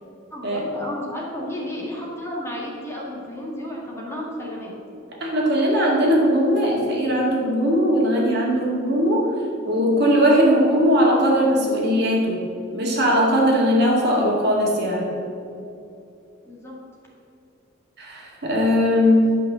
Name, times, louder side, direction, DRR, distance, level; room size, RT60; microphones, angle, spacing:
voice 1, 0.3-4.7 16.4-16.7, left 1 dB, 15° left, -4 dB, 1.9 m, -32 dB
voice 2, 5.2-9.2 9.6-12.4 12.7-15.1 18.0-19.3, equal, 55° right, -3 dB, 2.2 m, -19 dB
11.5 x 5.6 x 6.7 m, 2.7 s
head